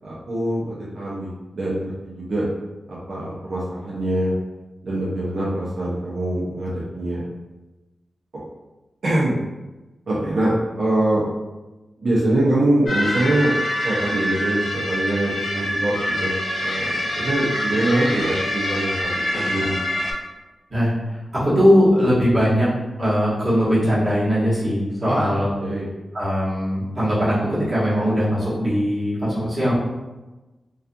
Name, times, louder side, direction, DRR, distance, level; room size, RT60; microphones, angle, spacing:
voice 1, 0.0-2.5 2.9-4.3 4.8-7.3 9.0-9.4 10.1-11.2 12.0-13.5 13.8-16.3 16.6-19.1 19.4-19.8 25.0-25.8, right 1 dB, 70° right, -7 dB, 0.6 m, -23 dB
sound 1, 12.9-20.1, left 1 dB, 80° left, 0.7 m, -25 dB
voice 2, 21.3-22.7 23.0-25.5 26.1-29.7, equal, 30° right, -9 dB, 1.2 m, -20 dB
2.4 x 2.3 x 2.6 m, 1.1 s
wide cardioid pair, 100°, 0 cm